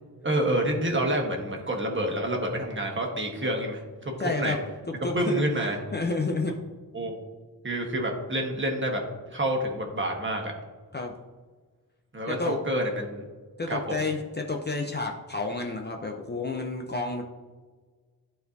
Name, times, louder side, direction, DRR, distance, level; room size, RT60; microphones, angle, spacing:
voice 1, 0.2-4.6 5.0-5.8 6.9-7.1 7.6-9.0 9.3-10.5 12.1-13.2 13.7-14.0, right 1 dB, 30° right, 1 dB, 1.2 m, -28 dB
voice 2, 4.2-4.6 5.0-5.4 5.9-6.5 10.9-11.1 12.3-12.6 13.6-17.2, left 3 dB, 30° left, 2 dB, 0.5 m, -30 dB
12.5 x 4.4 x 2.7 m, 1.4 s
wide cardioid pair, 135°, 37 cm